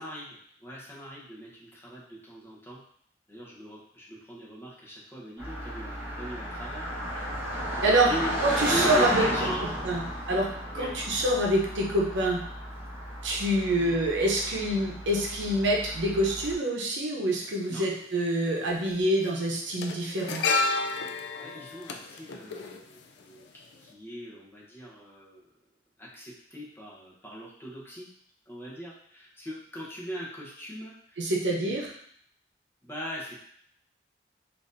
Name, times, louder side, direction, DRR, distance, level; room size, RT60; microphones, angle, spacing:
voice 1, 0.0-2.8 3.3-6.8 7.1-7.2 7.5-9.8 10.7-10.9 13.8-13.9 17.7-17.8 21.2-25.4 26.0-28.1 28.5-31.3 31.7-31.8 32.8-33.4, equal, 15° left, -6 dB, 0.8 m, -40 dB
Car passing by, 5.4-16.5, equal, 15° right, 1.2 m, -33 dB
voice 2, 8.4-9.3 9.8-10.5 10.7-12.4 13.2-20.4 31.2-31.9, right 1 dB, 85° right, -2 dB, 0.8 m, -26 dB
sound 1, 17.3-17.4 18.6-18.9 19.2-23.4 23.7-23.9, left 3 dB, 70° left, 0.4 m, -31 dB
4.1 x 2.6 x 2.5 m, 0.65 s
head